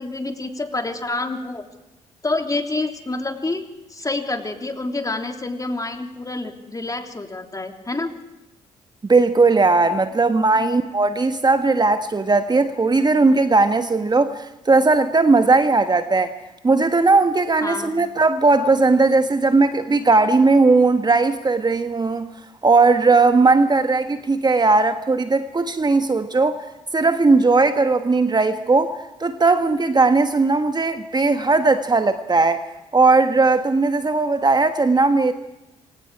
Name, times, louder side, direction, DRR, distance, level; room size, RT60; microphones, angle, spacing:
voice 1, 0.0-1.6 2.2-8.1 17.6-17.9, left 2 dB, 20° left, 4 dB, 3.3 m, -27 dB
voice 2, 9.1-16.3 16.6-22.3 22.6-26.6 26.9-28.9 29.2-32.6 32.9-35.3, right 3 dB, 25° right, 8 dB, 1.4 m, -17 dB
27.5 x 25.5 x 4.9 m, 0.95 s
hypercardioid pair, 45°, 16 cm